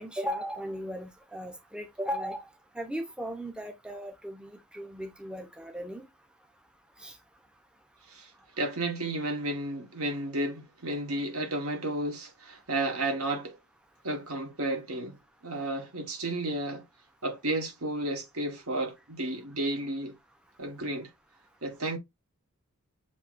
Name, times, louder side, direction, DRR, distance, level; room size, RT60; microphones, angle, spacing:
voice 1, 0.0-2.4 2.7-6.1 7.0-7.2, equal, 5° right, 0.6 m, -37 dB
voice 2, 8.6-13.6 14.0-15.2 15.4-16.8 17.2-20.1 20.6-21.1 21.6-22.0, right 1 dB, 75° right, 1.3 m, -32 dB
6.8 x 2.8 x 2.4 m
head